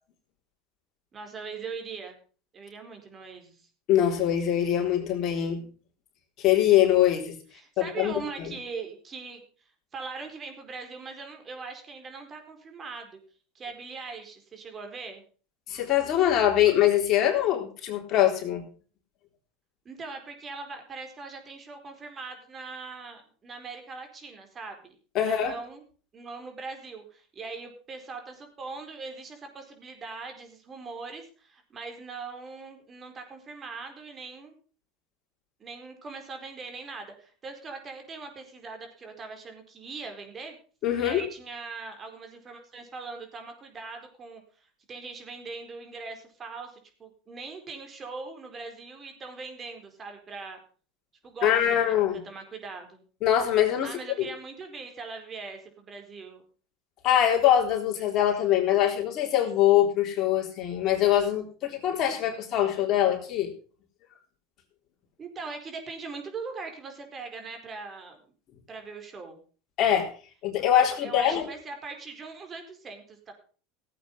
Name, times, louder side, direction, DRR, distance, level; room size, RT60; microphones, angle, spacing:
voice 1, 1.1-2.2 2.5-3.7 7.5-9.4 9.9-13.2 13.5-15.2 19.8-25.8 26.1-34.5 35.6-40.6 41.0-44.4 44.9-50.6 51.2-51.9 52.2-53.0 53.8-56.4 65.2-68.2 68.7-69.4 70.8-73.3, right 4 dB, 30° right, 5 dB, 4.4 m, -41 dB
voice 2, 3.9-5.7 6.4-7.4 7.8-8.1 15.7-18.7 25.1-25.5 40.8-41.2 51.4-52.2 53.2-54.3 57.0-63.5 69.8-70.1 70.4-71.5, left 11 dB, 50° left, 1 dB, 3.7 m, -23 dB
16.5 x 8.5 x 5.4 m, 0.40 s
hypercardioid pair, 100°, 0 cm